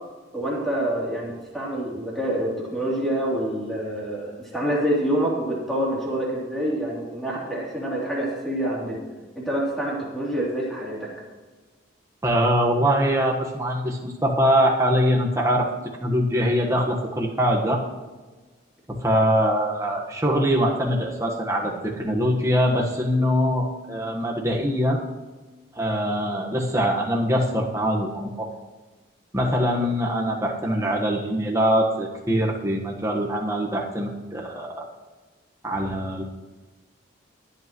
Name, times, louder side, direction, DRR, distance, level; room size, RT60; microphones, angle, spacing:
voice 1, 0.3-9.0 9.3-11.1, right 1 dB, ahead, -5 dB, 3.1 m, -27 dB
voice 2, 12.2-15.7 16.0-17.8 18.9-25.0 25.7-28.5 29.3-34.9 35.6-36.2, equal, 15° right, -1 dB, 1.4 m, -23 dB
22.0 x 8.4 x 3.1 m, 1.3 s
head